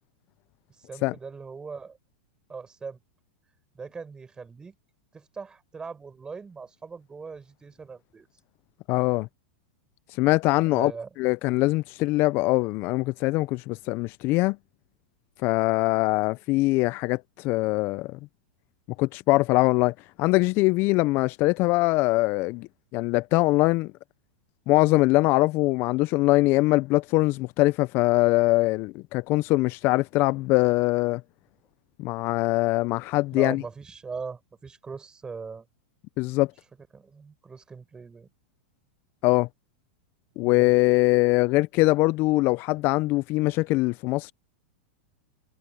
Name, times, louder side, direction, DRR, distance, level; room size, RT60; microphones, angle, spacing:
voice 1, 0.9-2.0 2.5-3.0 3.7-4.7 5.1-8.3 10.7-11.1 33.3-35.6 36.9-38.3 40.4-40.7 43.9-44.0, right 5 dB, 15° right, 5.5 m, -40 dB
voice 2, 8.9-9.3 10.2-10.9 11.2-14.6 15.4-18.2 19.0-22.7 22.9-23.9 24.7-31.2 32.0-33.6 36.2-36.5 39.2-39.5 40.4-44.3, left 21 dB, 40° left, 0.5 m, -22 dB
hypercardioid pair, 130°, 6 cm